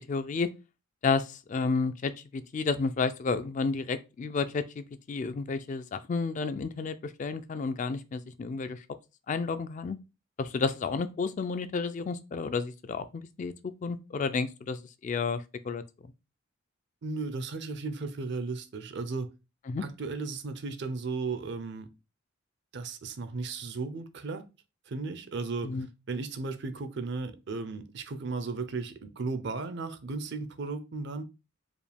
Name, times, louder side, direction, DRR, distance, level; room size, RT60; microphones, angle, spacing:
voice 1, 0.1-0.5 1.0-8.8 9.3-10.0 10.4-13.5 13.8-15.8 19.7-19.8 25.6-25.9, left 4 dB, 35° left, 0.3 m, -31 dB
voice 2, 17.0-19.3 19.8-21.9 22.7-24.5 24.9-25.7 26.1-31.2, right 3 dB, 55° right, 0.5 m, -35 dB
4.9 x 2.3 x 3.3 m
head